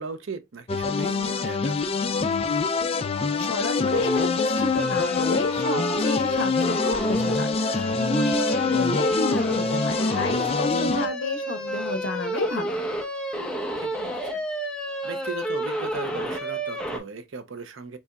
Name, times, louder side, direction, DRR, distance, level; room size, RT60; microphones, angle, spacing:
voice 1, 0.0-2.0 13.8-14.4 15.0-18.0, right 4 dB, 75° right, 0.6 m, -37 dB
sound 1, 0.7-11.1, left 4 dB, 30° left, 0.4 m, -25 dB
voice 2, 3.4-12.8, left 1 dB, 65° left, 1.1 m, -30 dB
sound 2, 3.9-17.0, equal, 5° left, 1.0 m, -30 dB
5.3 x 3.4 x 2.3 m
head